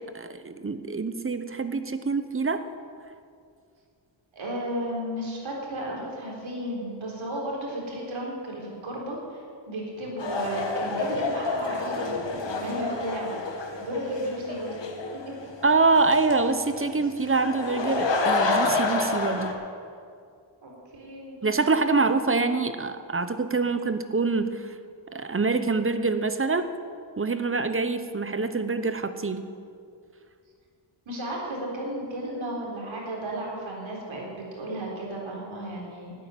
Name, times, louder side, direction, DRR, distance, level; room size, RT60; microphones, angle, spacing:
voice 1, 0.0-2.7 15.6-19.5 21.4-24.7 25.1-26.7 27.2-29.5, right 3 dB, 25° right, 10 dB, 0.9 m, -25 dB
voice 2, 4.3-13.4 13.8-14.8 20.6-21.4 31.1-36.1, right 1 dB, 70° right, -2 dB, 4.0 m, -34 dB
sound 1, 10.2-19.5, left 3 dB, 60° left, 2.0 m, -29 dB
12.5 x 9.3 x 9.2 m, 2.3 s
cardioid pair, 85°, 48 cm